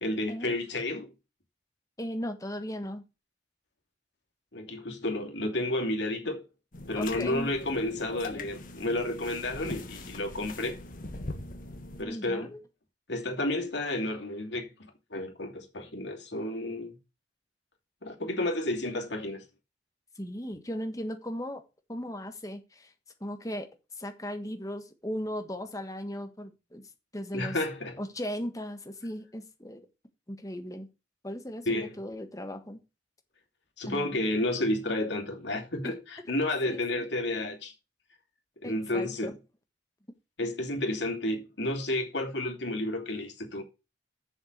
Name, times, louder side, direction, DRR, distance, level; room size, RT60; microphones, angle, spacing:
voice 1, 0.0-1.1 4.5-6.5 6.9-10.8 12.0-12.5 13.1-17.0 18.0-19.4 27.3-28.0 31.7-31.9 33.8-37.7 38.6-39.3 40.4-43.6, left 1 dB, 75° left, 2.7 m, -31 dB
voice 2, 2.0-3.0 7.0-7.5 8.3-8.5 12.0-12.6 20.1-21.6 21.9-22.9 23.2-23.7 24.0-27.6 28.0-29.9 30.3-30.9 31.2-32.8 33.9-34.2 35.8-35.9 36.7-37.1 38.6-39.4, equal, 20° left, 1.5 m, -37 dB
sound 1, 6.7-12.0, left 2 dB, 50° left, 1.4 m, -42 dB
7.3 x 6.4 x 6.5 m
head